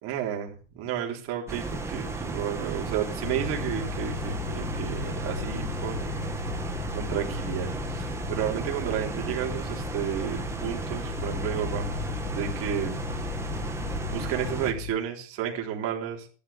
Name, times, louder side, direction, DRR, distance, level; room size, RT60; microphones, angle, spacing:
voice 1, 0.0-6.3 6.9-11.9 12.3-13.0 14.0-16.3, right 10 dB, 40° right, 0 dB, 3.8 m, -32 dB
sound 1, 1.5-14.7, right 3 dB, 5° right, 1.6 m, -34 dB
sound 2, 3.2-14.9, left 8 dB, 40° left, 1.2 m, -36 dB
15.5 x 12.0 x 3.6 m, 0.37 s
supercardioid pair, 150°, 36 cm